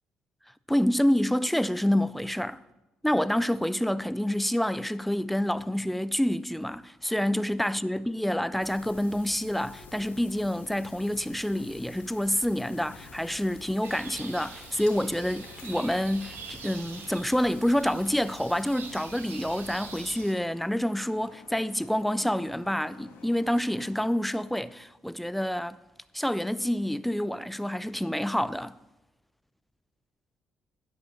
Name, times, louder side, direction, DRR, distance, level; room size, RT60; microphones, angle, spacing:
voice 1, 0.7-2.6 3.0-25.8 26.1-28.7, equal, 5° left, 0.4 m, -28 dB
sound 1, 8.6-20.2, left 3 dB, 60° left, 2.7 m, -51 dB
sound 2, 9.7-23.9, left 5 dB, 85° left, 1.5 m, -54 dB
sound 3, 13.8-20.3, right 5 dB, 65° right, 1.3 m, -45 dB
11.5 x 5.2 x 7.0 m
cardioid pair, 80°, 4 cm